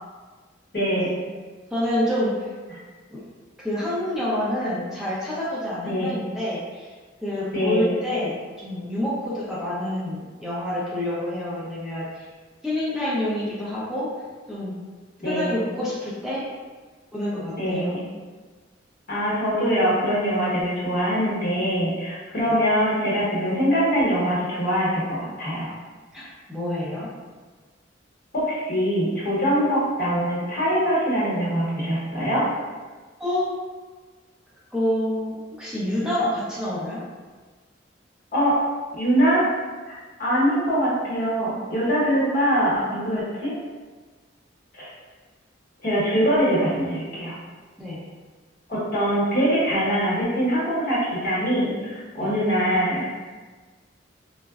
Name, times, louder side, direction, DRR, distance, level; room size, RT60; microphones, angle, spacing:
voice 1, 0.7-1.2 5.8-6.2 7.5-7.9 15.2-15.5 17.6-18.0 19.1-25.7 28.3-32.4 38.3-38.6 39.0-39.4 39.9-40.0 40.2-43.5 44.7-44.9 45.8-47.3 48.7-53.1, equal, 50° left, -7 dB, 1.0 m, -23 dB
voice 2, 1.7-2.5 3.1-3.2 3.6-6.9 7.2-12.2 12.6-14.1 14.5-14.7 15.2-16.4 17.1-18.0 22.5-22.6 26.1-27.1 33.2-33.5 34.7-37.0 47.8-48.0 52.2-52.4, left 1 dB, ahead, -9 dB, 0.5 m, -27 dB
3.7 x 2.1 x 2.3 m, 1.4 s
head